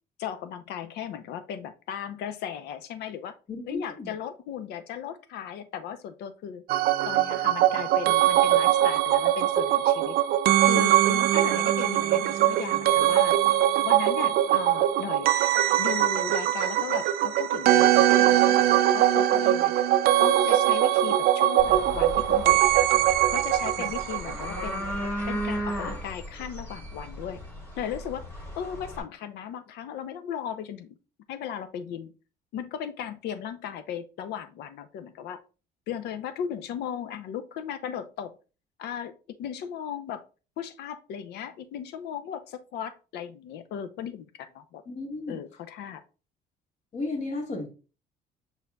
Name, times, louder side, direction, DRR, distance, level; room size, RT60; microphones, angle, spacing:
voice 1, 0.2-3.3 3.7-6.6 7.1-10.2 10.6-11.0 11.3-13.4 13.8-15.3 15.8-19.7 20.2-22.9 23.3-24.9 25.3-27.4 27.8-28.3 28.6-31.0 31.3-32.1 32.5-35.4 35.9-38.3 38.8-39.1 39.4-40.2 40.6-44.8 45.3-46.0, left 9 dB, 75° left, 11 dB, 0.6 m, -36 dB
voice 2, 3.5-4.1 11.1-11.3 23.8-23.9 44.9-45.4 46.9-47.7, left 2 dB, 45° left, 2 dB, 1.5 m, -34 dB
sound 1, 6.7-24.8 25.0-25.1, right 13 dB, 65° right, 0.4 m, -22 dB
sound 2, 21.6-29.0, equal, 10° left, 1.8 m, -36 dB
5.4 x 4.1 x 2.3 m, 0.33 s
cardioid pair, 110°, 17 cm